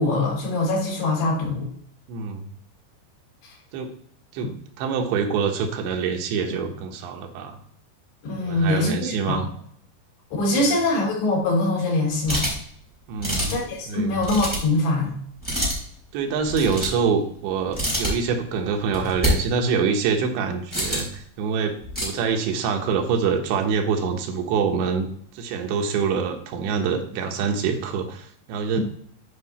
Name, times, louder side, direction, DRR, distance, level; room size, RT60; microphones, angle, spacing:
voice 1, 0.0-1.7 3.4-3.5 4.4-4.5 8.2-9.5 10.3-12.5 13.5-15.2 28.7-28.8, left 2 dB, 75° left, -3 dB, 5.3 m, -23 dB
voice 2, 2.1-2.5 3.7-3.9 4.3-4.5 4.8-7.6 8.4-9.5 10.6-10.7 13.1-13.5 13.9-14.2 16.1-25.1 25.3-28.8, right 6 dB, 85° right, 3 dB, 3.4 m, -25 dB
sound 1, 12.3-12.7 13.2-13.7 14.2-14.6 15.4-15.8 16.4-17.0 17.7-18.1 18.9-19.3 20.7-21.1 21.8-22.0, equal, ahead, 3.2 m, -26 dB
10.5 x 4.9 x 4.1 m, 0.64 s
omnidirectional pair, 4.9 m